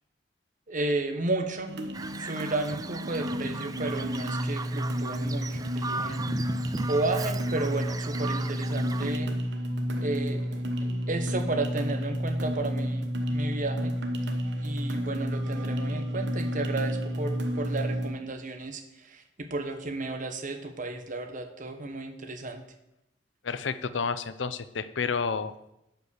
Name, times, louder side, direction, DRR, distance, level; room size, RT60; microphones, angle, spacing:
voice 1, 0.7-1.7 2.2-6.2 6.9-9.3 10.0-13.9 14.6-22.6, right 2 dB, 45° right, 6 dB, 1.2 m, -33 dB
sound 1, 1.7-18.1, equal, 65° right, 1.2 m, -31 dB
Bird vocalization bird call bird song, 1.9-9.2, right 3 dB, 20° right, 0.4 m, -37 dB
voice 2, 23.4-25.7, left 5 dB, 80° left, 13 dB, 0.6 m, -30 dB
10.5 x 5.5 x 6.5 m, 0.85 s
head